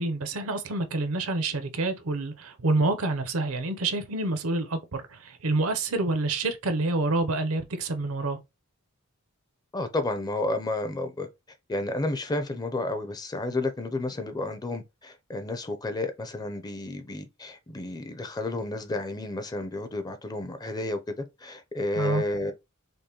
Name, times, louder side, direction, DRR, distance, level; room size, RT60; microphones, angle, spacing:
voice 1, 0.0-8.4 21.9-22.2, right 2 dB, 70° right, 0.7 m, -27 dB
voice 2, 9.7-11.3 11.7-21.1 21.4-22.5, left 2 dB, 20° left, 0.5 m, -31 dB
5.2 x 2.1 x 2.9 m
head